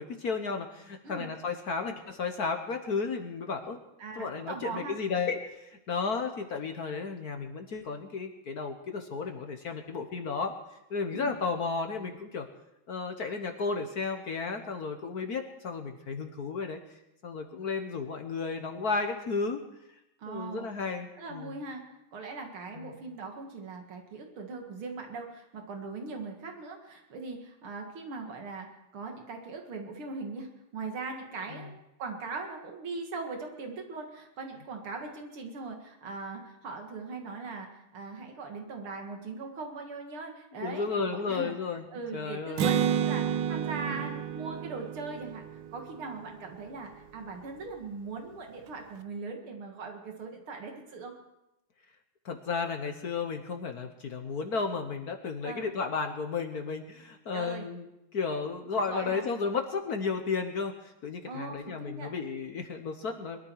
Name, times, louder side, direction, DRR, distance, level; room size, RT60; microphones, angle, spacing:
voice 1, 0.0-3.8 4.2-10.6 10.9-12.5 12.9-16.8 17.2-19.6 20.3-21.6 22.7-23.0 31.5-31.7 40.5-41.9 42.1-42.7 43.8-44.0 52.2-63.4, left 4 dB, 50° left, 5 dB, 1.5 m, -33 dB
voice 2, 4.0-4.9 11.1-11.3 20.2-20.7 21.2-21.8 22.1-28.7 28.9-31.7 32.0-41.6 41.9-45.5 45.7-51.1 55.4-55.7 57.3-57.7 58.7-59.2 61.2-62.1, right 4 dB, 90° right, 2 dB, 2.9 m, -40 dB
Acoustic guitar, 42.6-46.2, right 8 dB, 65° right, 1.5 m, -30 dB
22.5 x 13.0 x 4.7 m, 0.88 s
omnidirectional pair, 2.3 m